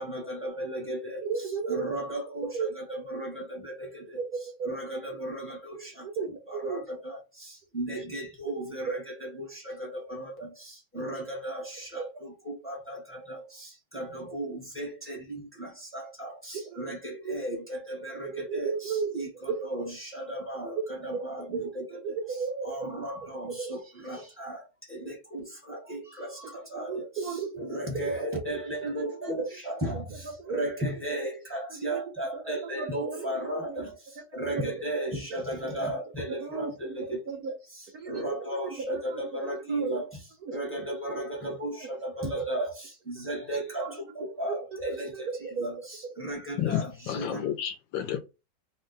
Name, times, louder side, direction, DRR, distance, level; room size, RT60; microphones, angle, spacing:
voice 1, 0.0-1.2 1.7-4.2 4.6-6.1 6.5-22.2 22.6-37.2 38.0-40.1 40.5-45.1 45.6-47.5, right 1 dB, 10° left, 0.6 m, -35 dB
voice 2, 1.2-2.0 2.5-3.0 4.2-5.0 6.0-6.8 8.4-8.5 16.7-17.4 18.2-19.7 21.5-22.7 23.5-23.7 26.8-27.8 28.9-29.5 30.4-30.6 31.2-31.3 31.7-32.0 32.3-33.8 34.5-34.7 35.6-35.7 36.4-36.9 37.3-37.5 37.9-40.0 40.4-40.6 42.4-42.5 43.8-43.9 44.4-45.7, right 5 dB, 75° right, 0.8 m, -35 dB
voice 3, 46.6-48.2, left 10 dB, 75° left, 1.2 m, -30 dB
3.6 x 2.1 x 3.8 m
omnidirectional pair, 2.3 m